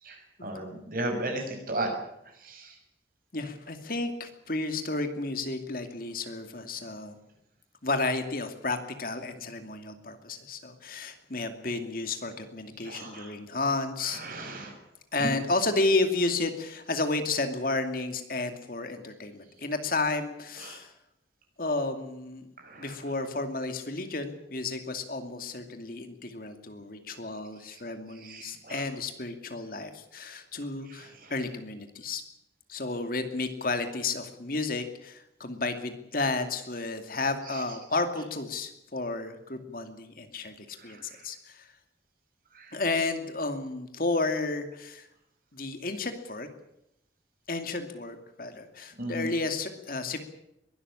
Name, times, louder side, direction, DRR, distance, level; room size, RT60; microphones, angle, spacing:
voice 1, 0.0-1.9 2.4-2.8 12.8-13.3 14.0-14.7 15.2-15.3 20.6-20.8 22.6-22.9 27.7-27.8 28.1-28.8 30.8-31.3 37.5-37.6 40.8-41.3 42.5-42.8 49.0-49.3, right 1 dB, 55° right, 4 dB, 6.2 m, -36 dB
voice 2, 3.3-7.2 7.8-14.2 15.1-20.9 21.6-22.5 22.8-32.2 32.7-41.7 42.7-45.1 45.5-46.5 47.5-50.2, left 3 dB, 55° left, 7 dB, 2.5 m, -32 dB
22.5 x 13.0 x 10.0 m, 0.82 s
head